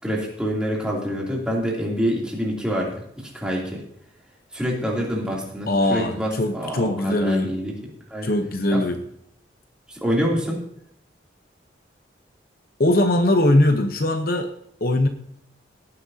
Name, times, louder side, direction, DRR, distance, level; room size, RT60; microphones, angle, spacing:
voice 1, 0.0-3.8 4.5-7.7 8.1-8.3 8.7-8.8 9.9-10.6, equal, 5° right, -4 dB, 2.9 m, -26 dB
voice 2, 5.7-7.5 8.2-9.0 12.8-14.5 14.8-15.1, left 1 dB, 55° left, 6 dB, 0.9 m, -20 dB
17.5 x 10.0 x 2.8 m, 0.70 s
head